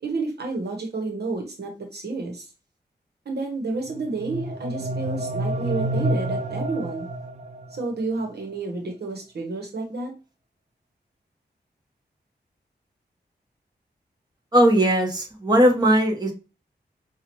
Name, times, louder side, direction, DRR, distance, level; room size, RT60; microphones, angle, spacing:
voice 1, 0.0-2.5 3.2-7.1 7.7-10.1, right 3 dB, 70° right, 2 dB, 1.1 m, -30 dB
sound 1, 3.9-7.8, right 1 dB, 40° right, 0.4 m, -29 dB
voice 2, 14.5-16.3, right 1 dB, 25° right, 0 dB, 1.2 m, -18 dB
5.6 x 2.4 x 3.0 m, 0.32 s
wide cardioid pair, 85°, 17 cm